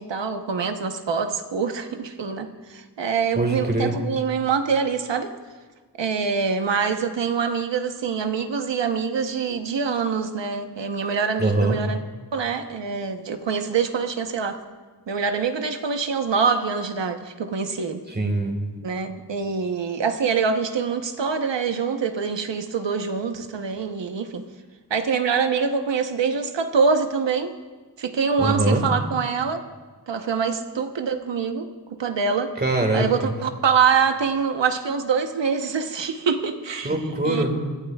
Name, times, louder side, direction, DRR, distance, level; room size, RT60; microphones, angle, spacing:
voice 1, 0.0-5.3 6.0-12.0 12.3-14.6 15.1-18.0 18.8-24.4 24.9-27.5 28.0-29.6 30.1-32.5 32.9-36.9 37.2-37.5, right 5 dB, 80° right, 6 dB, 1.1 m, -25 dB
voice 2, 3.4-4.0 11.4-11.8 18.1-18.6 28.4-28.9 32.6-33.3 36.8-37.5, right 2 dB, 25° right, 3 dB, 1.9 m, -22 dB
24.5 x 15.0 x 2.4 m, 1.4 s
wide cardioid pair, 115°, 43 cm